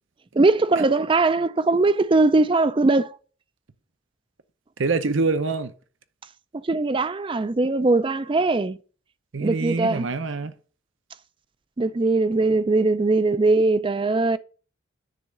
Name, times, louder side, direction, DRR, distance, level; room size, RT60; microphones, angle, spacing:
voice 1, 0.4-3.1 6.6-8.8 9.4-10.1 11.8-14.4, right 3 dB, 25° right, 0.4 m, -20 dB
voice 2, 4.8-5.7 9.3-10.5, right 3 dB, 65° right, 0.7 m, -25 dB
10.0 x 3.6 x 6.5 m
head